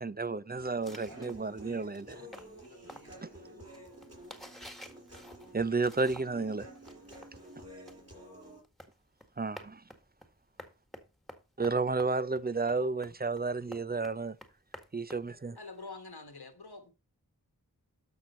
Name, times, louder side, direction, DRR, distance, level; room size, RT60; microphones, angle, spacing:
voice 1, 0.0-2.1 5.5-6.6 9.4-9.8 11.6-14.4 14.9-15.6, right 3 dB, 25° right, 0.5 m, -32 dB
Human voice, 0.6-8.6, equal, 40° right, 5.8 m, -51 dB
sound 1, 0.8-6.5 6.7-15.8, left 1 dB, ahead, 1.7 m, -52 dB
voice 2, 1.0-3.8 6.4-7.3, equal, 70° right, 7.4 m, -56 dB
voice 3, 15.6-16.9, left 3 dB, 90° left, 1.6 m, -46 dB
12.5 x 6.2 x 4.3 m
wide cardioid pair, 40°, 37 cm